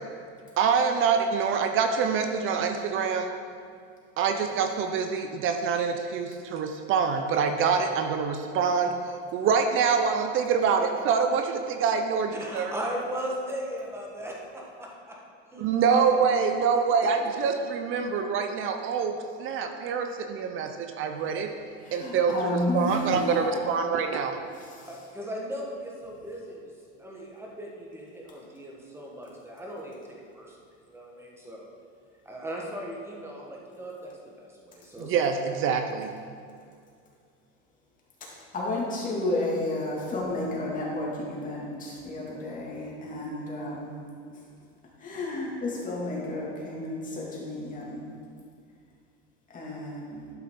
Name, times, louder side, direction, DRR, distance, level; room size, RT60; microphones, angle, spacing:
voice 1, 0.6-3.3 4.2-8.9 9.3-12.7 15.6-21.5 21.9-24.4 35.0-36.1, right 6 dB, 40° right, 6 dB, 0.6 m, -25 dB
voice 2, 12.3-15.2 15.5-16.2 24.9-26.6 27.0-30.0 30.3-30.6 30.9-31.7 32.2-35.2, equal, 10° right, -2 dB, 1.5 m, -38 dB
voice 3, 21.8-23.4 24.5-25.0 38.5-43.9 45.0-48.0 49.5-50.3, left 2 dB, 25° left, -4 dB, 2.3 m, -32 dB
12.0 x 5.7 x 3.8 m, 2.3 s
supercardioid pair, 130°, 30 cm